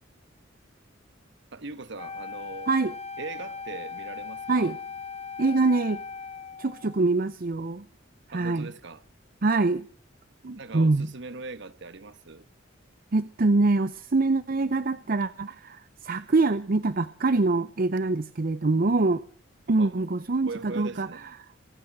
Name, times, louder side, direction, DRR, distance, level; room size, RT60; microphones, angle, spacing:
voice 1, 1.5-2.7 3.2-4.7 8.3-9.0 10.5-12.4 19.8-20.0 20.4-21.2, right 3 dB, 65° right, 1.2 m, -40 dB
Wind instrument woodwind instrument, 2.0-7.1, left 5 dB, 35° left, 0.7 m, -39 dB
voice 2, 5.4-6.0 6.6-7.8 8.3-8.7 9.4-9.9 10.4-11.1 13.1-19.2 19.7-21.1, right 3 dB, 50° right, 0.7 m, -24 dB
23.5 x 10.0 x 6.0 m
head